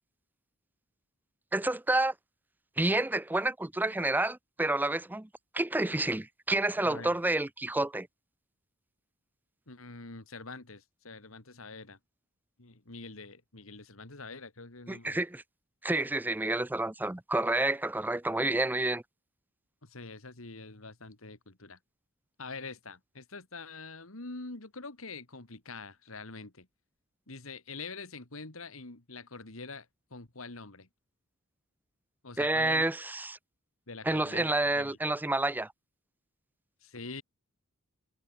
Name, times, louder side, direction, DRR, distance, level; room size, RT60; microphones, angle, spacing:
voice 1, 1.5-2.1 2.8-5.3 5.5-8.1 14.9-15.4 15.8-19.0 32.4-33.4 34.1-35.7, right 2 dB, 10° right, 0.5 m, -29 dB
voice 2, 9.7-12.0 12.6-15.2 19.8-21.8 22.4-26.7 27.3-30.9 32.2-32.8 33.9-34.5 34.7-35.0 36.8-37.2, left 3 dB, 70° left, 2.5 m, -45 dB
head